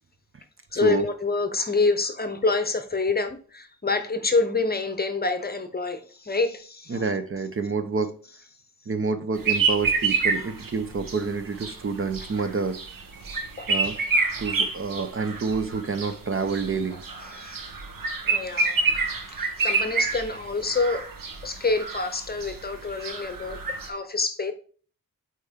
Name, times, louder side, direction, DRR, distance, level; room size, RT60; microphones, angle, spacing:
voice 1, 0.7-7.0 12.4-12.5 13.6-13.7 16.9-17.6 18.2-18.9 19.3-21.1 21.4-24.5, left 3 dB, 30° left, 0.8 m, -27 dB
voice 2, 6.9-8.1 8.9-12.8 13.7-14.0 14.4-17.0, right 5 dB, 40° right, 0.6 m, -28 dB
sound 1, 9.4-23.9, right 4 dB, 75° right, 1.2 m, -28 dB
8.0 x 4.5 x 3.5 m
wide cardioid pair, 150°, 34 cm